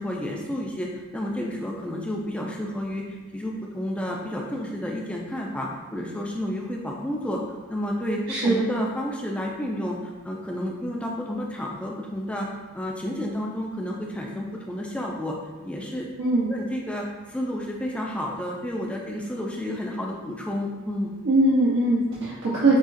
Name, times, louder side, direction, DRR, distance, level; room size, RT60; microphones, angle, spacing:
voice 1, 0.0-3.0 3.3-7.4 7.7-12.5 12.7-15.4 15.6-16.1 16.5-21.1, left 1 dB, 5° left, -2 dB, 0.4 m, -31 dB
voice 2, 8.3-8.6 16.2-16.5 21.2-22.8, right 2 dB, 80° right, -9 dB, 0.8 m, -21 dB
6.2 x 2.4 x 2.5 m, 1.2 s
head